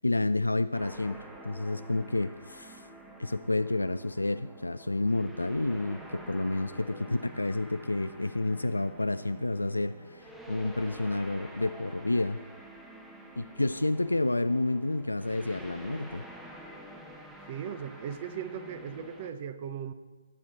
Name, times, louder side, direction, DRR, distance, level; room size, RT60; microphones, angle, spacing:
voice 1, 0.0-2.9 3.2-12.4 13.4-16.3, left 2 dB, 80° left, 11 dB, 0.4 m, -30 dB
sound 1, 0.7-19.3, equal, 5° right, 1.0 m, -48 dB
voice 2, 17.4-19.9, right 8 dB, 35° right, 11 dB, 0.9 m, -38 dB
20.0 x 7.5 x 4.2 m, 1.3 s
figure-of-eight pair, 135°, 0 cm